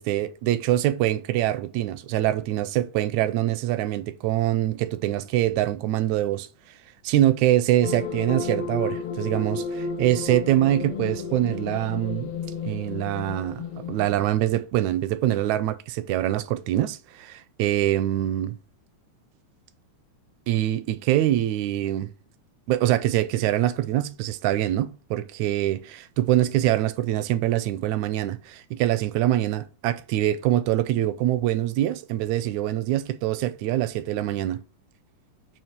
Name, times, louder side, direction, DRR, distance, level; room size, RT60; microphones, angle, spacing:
voice 1, 0.0-6.5 7.0-12.3 12.7-18.6 20.5-22.1 22.7-34.6, right 13 dB, 80° right, 1.8 m, -24 dB
sound 1, 7.8-14.2, left 5 dB, 75° left, 1.4 m, -32 dB
7.1 x 3.1 x 5.9 m
omnidirectional pair, 3.6 m